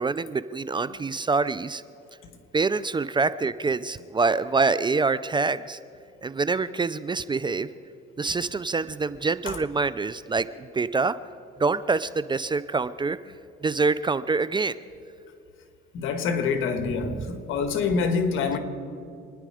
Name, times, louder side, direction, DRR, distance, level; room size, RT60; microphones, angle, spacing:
voice 1, 0.0-1.8 2.5-5.8 6.2-7.7 8.2-11.1 11.6-13.2 13.6-14.8 17.1-17.2, right 4 dB, 20° right, 0.5 m, -25 dB
voice 2, 15.9-18.6, left 5 dB, 70° left, 1.7 m, -26 dB
27.0 x 10.5 x 5.0 m
cardioid pair, 90°, 21 cm